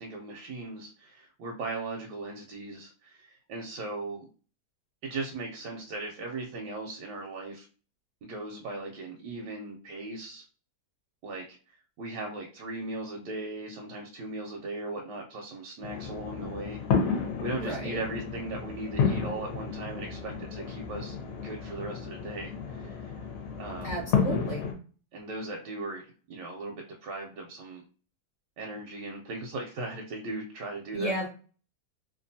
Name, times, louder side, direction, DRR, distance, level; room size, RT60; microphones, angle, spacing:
voice 1, 0.0-4.3 5.0-7.7 8.2-10.4 11.2-21.2 21.4-23.3 23.6-24.0 25.1-27.8 28.6-31.2, right 2 dB, 80° right, 1 dB, 1.2 m, -38 dB
sound 1, 15.8-24.7, left 6 dB, 60° left, 1.0 m, -32 dB
voice 2, 17.6-18.0 23.8-24.6 30.9-31.3, right 1 dB, 40° left, -4 dB, 0.7 m, -33 dB
2.9 x 2.3 x 2.6 m, 0.38 s
omnidirectional pair, 1.9 m